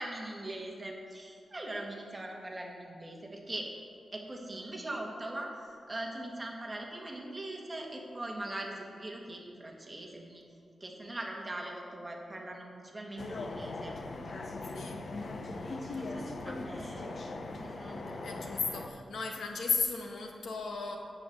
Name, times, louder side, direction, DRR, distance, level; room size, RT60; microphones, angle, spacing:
voice 1, 0.0-3.7 4.1-10.4 10.8-14.0 15.1-18.9, right 1 dB, 20° right, 0 dB, 1.4 m, -42 dB
sound 1, 13.2-18.9, left 2 dB, 45° left, 0.7 m, -40 dB
voice 2, 18.2-21.0, left 4 dB, 75° left, 2 dB, 1.3 m, -34 dB
8.3 x 6.6 x 7.7 m, 2.3 s
wide cardioid pair, 150°, 0 cm